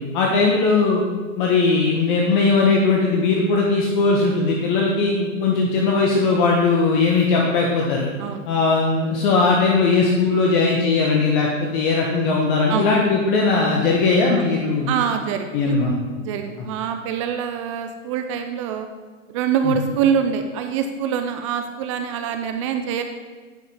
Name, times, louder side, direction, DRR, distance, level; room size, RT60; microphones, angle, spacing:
voice 1, 0.1-1.0 1.4-8.1 8.4-14.9 15.5-15.9 19.6-19.7, left 3 dB, 40° left, -1 dB, 1.4 m, -19 dB
voice 2, 14.9-15.8 16.2-18.9 19.3-23.0, right 7 dB, 25° right, 6 dB, 0.5 m, -24 dB
10.0 x 5.4 x 5.7 m, 1.4 s
hypercardioid pair, 130°, 40 cm